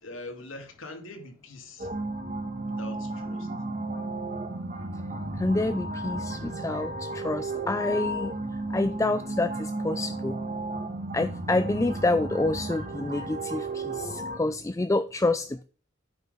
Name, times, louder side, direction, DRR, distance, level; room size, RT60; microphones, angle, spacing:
voice 1, 0.0-1.9 2.6-3.5, left 2 dB, 85° left, 2.4 m, -43 dB
sound 1, 1.8-14.4, right 2 dB, 40° right, 1.5 m, -34 dB
voice 2, 5.3-8.3 8.7-10.4 11.1-15.6, left 2 dB, 15° left, 0.4 m, -28 dB
9.4 x 5.9 x 5.4 m
head